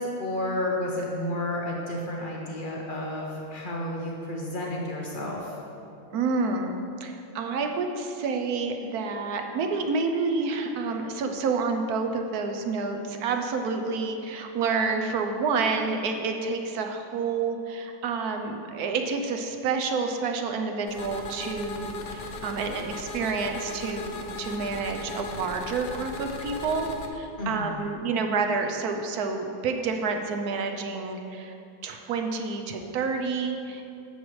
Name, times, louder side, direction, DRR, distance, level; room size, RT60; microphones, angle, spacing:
voice 1, 0.0-5.6 27.4-27.8, left 1 dB, 85° left, -2 dB, 0.4 m, -31 dB
voice 2, 6.1-31.5 31.8-33.8, right 4 dB, 70° right, 5 dB, 0.9 m, -29 dB
sound 1, 20.9-27.1, left 3 dB, 65° left, 1.2 m, -37 dB
11.0 x 7.4 x 3.1 m, 2.7 s
omnidirectional pair, 2.1 m